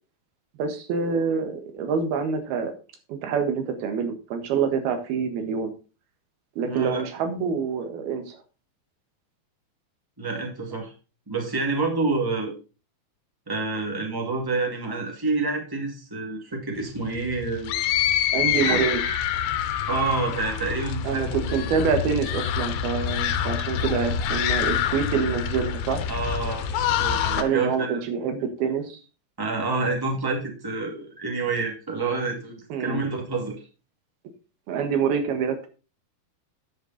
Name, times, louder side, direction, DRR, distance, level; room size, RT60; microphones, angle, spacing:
voice 1, 0.6-2.7 3.1-5.7 6.6-8.4 18.3-19.0 21.0-26.0 27.4-29.0 32.7-33.0 34.7-35.7, right 6 dB, 80° right, 7 dB, 3.5 m, -26 dB
voice 2, 6.6-7.0 10.2-10.9 11.3-12.5 13.5-17.7 18.6-18.8 19.9-21.3 26.1-26.6 26.9-28.0 29.4-33.6, right 3 dB, 10° right, 1 dB, 1.0 m, -28 dB
sound 1, 16.8-27.4, left 9 dB, 80° left, 2.7 m, -26 dB
10.0 x 6.8 x 4.0 m, 0.33 s
omnidirectional pair, 4.4 m